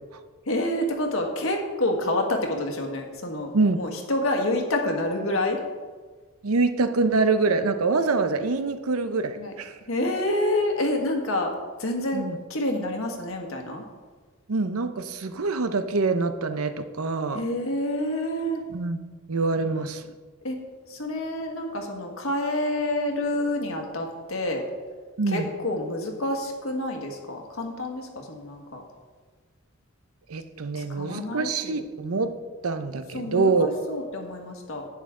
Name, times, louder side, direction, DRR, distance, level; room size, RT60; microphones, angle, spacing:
voice 1, 0.5-3.5 3.8-5.6 9.3-9.5 9.9-11.5 11.8-12.2 12.5-13.8 17.3-18.6 20.4-20.6 20.9-24.6 25.3-28.8 30.7-31.8 33.1-34.9, left 1 dB, 70° left, 3 dB, 1.6 m, -28 dB
voice 2, 6.4-9.7 12.1-12.4 14.5-17.4 18.7-19.0 19.3-20.0 25.2-25.5 30.3-32.3 32.6-33.7, right 3 dB, 90° right, 10 dB, 0.7 m, -25 dB
11.0 x 8.7 x 3.7 m, 1.4 s
head